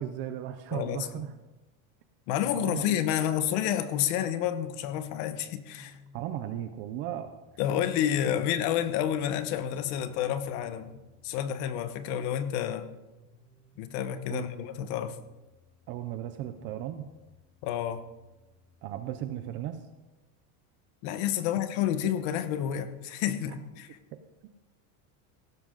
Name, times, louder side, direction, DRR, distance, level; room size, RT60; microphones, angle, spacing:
voice 1, 0.0-1.3 2.6-3.0 6.1-7.3 14.3-14.5 15.9-17.1 18.8-19.8 24.4-24.5, right 11 dB, 30° right, 9 dB, 0.4 m, -36 dB
voice 2, 0.7-1.2 2.3-6.0 7.6-11.0 11.2-12.9 13.8-15.2 17.6-18.0 21.0-24.0, left 10 dB, 50° left, 11 dB, 1.0 m, -29 dB
sound 1, 3.3-19.3, left 1 dB, 10° left, 1.0 m, -60 dB
16.5 x 12.5 x 3.8 m, 1.1 s
cardioid pair, 175°, 43 cm